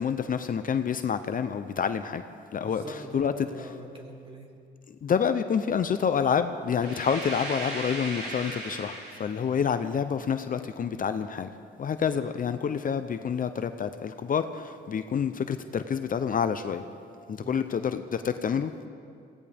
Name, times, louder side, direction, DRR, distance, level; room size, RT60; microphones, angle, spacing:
voice 1, 0.0-2.2 2.5-2.8 3.1-3.3 4.9-11.5 11.8-16.8 17.3-18.7, left 7 dB, 45° left, 9 dB, 0.7 m, -28 dB
voice 2, 2.6-4.6 17.4-17.6, right 1 dB, 25° right, 0 dB, 2.8 m, -43 dB
sound 1, 6.8-9.6, right 1 dB, 55° right, 3.8 m, -37 dB
23.5 x 17.0 x 3.5 m, 2.4 s
cardioid pair, 90°, 20 cm